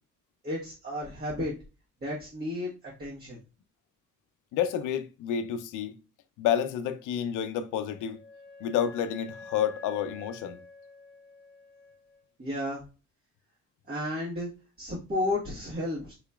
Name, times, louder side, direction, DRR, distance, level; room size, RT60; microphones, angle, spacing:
voice 1, 0.4-1.5 2.0-3.4 12.4-12.8 13.9-14.5 14.8-16.1, left 1 dB, 30° right, 1.3 m, -32 dB
voice 2, 4.5-5.9 6.4-8.2 8.6-10.6, left 9 dB, 85° left, 0.5 m, -29 dB
Wind instrument woodwind instrument, 7.6-12.2, left 4 dB, 15° left, 1.3 m, -48 dB
4.1 x 2.9 x 2.2 m
cardioid pair, 90°, 30 cm